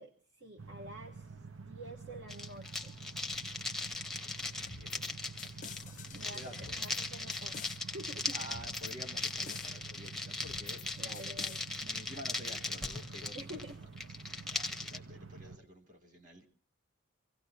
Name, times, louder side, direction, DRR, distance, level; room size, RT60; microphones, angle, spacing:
voice 1, 0.0-3.0 6.1-6.4 6.7-8.4 11.0-11.6 13.3-13.8, right 1 dB, 55° right, 3 dB, 1.2 m, -48 dB
sound 1, 0.6-15.6, right 4 dB, 75° right, 0.9 m, -49 dB
sound 2, 2.3-15.0, left 3 dB, ahead, 0.8 m, -39 dB
sound 3, 4.7-5.1 5.4-7.0 7.3-7.8 8.5-8.9 9.2-9.7 10.4-10.9 11.1-11.6, left 7 dB, 40° left, 0.6 m, -49 dB
voice 2, 4.7-6.7 8.3-10.9 11.1-11.5 11.8-13.6 14.2-16.5, equal, 40° right, 5 dB, 2.7 m, -51 dB
25.5 x 16.5 x 2.7 m, 0.41 s
head